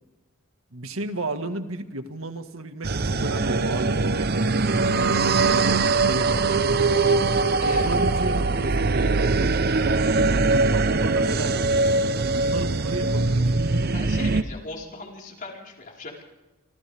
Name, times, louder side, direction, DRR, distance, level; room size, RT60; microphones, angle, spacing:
voice 1, 0.7-6.5 7.6-11.6 12.3-14.1, right 2 dB, 85° right, 7 dB, 1.8 m, -33 dB
sound 1, 2.8-14.4, right 3 dB, 50° right, 0.8 m, -22 dB
voice 2, 7.6-7.9 13.9-16.2, left 3 dB, 40° left, -1 dB, 4.7 m, -38 dB
28.5 x 27.0 x 3.5 m, 1.1 s
head